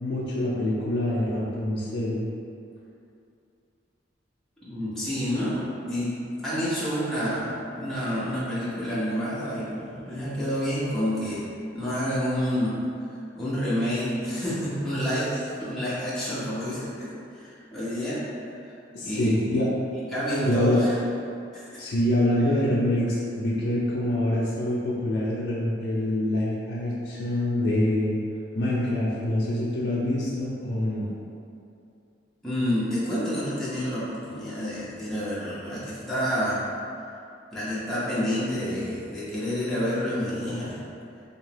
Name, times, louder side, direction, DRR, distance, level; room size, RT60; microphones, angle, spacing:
voice 1, 0.0-2.3 18.9-19.7 20.4-20.8 21.8-28.2 28.5-31.1, left 1 dB, 60° left, -8 dB, 0.5 m, -25 dB
voice 2, 4.6-6.1 6.4-11.4 11.7-12.8 13.3-18.2 18.5-18.7 19.0-19.6 20.1-20.9 21.5-21.9 32.4-36.6 37.5-40.8, equal, ahead, -12 dB, 0.8 m, -29 dB
3.4 x 2.8 x 3.3 m, 2.5 s
head